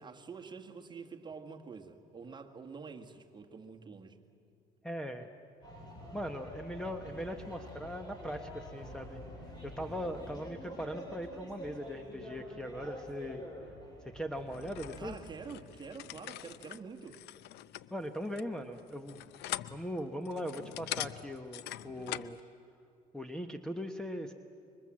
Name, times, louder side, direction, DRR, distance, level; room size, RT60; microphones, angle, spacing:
voice 1, 0.0-4.2 15.0-17.2, right 5 dB, 25° right, 3 dB, 1.9 m, -47 dB
voice 2, 4.8-5.3 6.1-9.2 9.6-13.4 14.1-15.2 17.9-19.3 19.7-22.4 23.1-24.3, equal, 5° left, 7 dB, 1.1 m, -40 dB
sound 1, 5.6-15.2, equal, 25° left, 6.4 m, -47 dB
sound 2, 14.5-22.4, left 14 dB, 85° left, 0.6 m, -43 dB
26.0 x 23.0 x 7.6 m, 2.6 s
cardioid pair, 110°, 17 cm